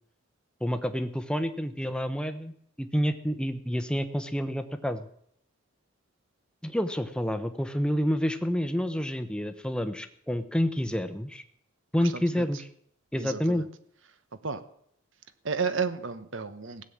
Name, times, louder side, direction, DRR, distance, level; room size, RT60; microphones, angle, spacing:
voice 1, 0.6-5.1 6.6-11.4 11.9-12.7 13.1-13.7, equal, 5° left, 8 dB, 0.8 m, -29 dB
voice 2, 12.0-12.4 13.1-13.6 14.4-14.6 15.4-16.8, right 5 dB, 65° right, 12 dB, 1.1 m, -32 dB
16.5 x 7.7 x 8.7 m, 0.68 s
head